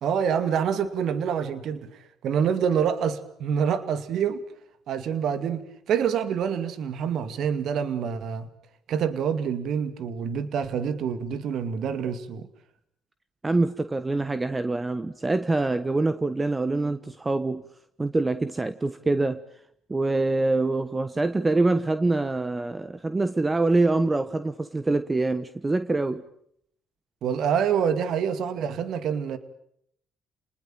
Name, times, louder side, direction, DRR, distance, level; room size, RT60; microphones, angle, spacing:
voice 1, 0.0-4.4 4.9-8.5 8.9-12.5 27.2-29.4, right 7 dB, 70° right, 2.3 m, -26 dB
voice 2, 13.4-17.6 18.0-19.4 19.9-26.2, right 2 dB, 25° right, 1.2 m, -25 dB
30.0 x 20.0 x 9.1 m
supercardioid pair, 60°, 0 cm